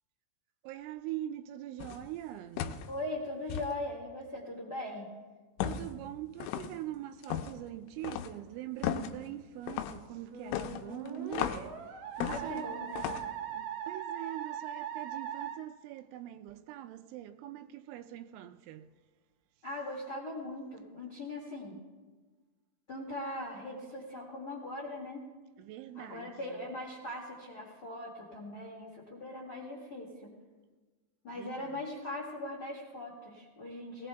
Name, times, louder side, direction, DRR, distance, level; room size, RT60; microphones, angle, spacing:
voice 1, 0.6-2.9 5.6-11.8 12.2-12.7 13.5-18.9 25.6-26.7 31.3-31.7, right 13 dB, 85° right, 3.0 m, -43 dB
sound 1, 1.8-2.1 2.6-2.9 3.5-3.7 5.6-5.9 6.4-6.7 7.2-7.6 8.0-8.3 8.8-9.1 9.7-10.0 10.5-11.7 12.2-12.6 13.0-13.3, left 10 dB, 85° left, 3.0 m, -35 dB
voice 2, 2.9-5.1 12.2-13.0 19.6-21.8 22.9-25.3 25.9-30.3 31.2-34.1, left 1 dB, 65° left, 1.0 m, -40 dB
Musical instrument, 10.3-15.6, right 8 dB, 65° right, 2.3 m, -40 dB
19.0 x 18.0 x 2.3 m
omnidirectional pair, 5.5 m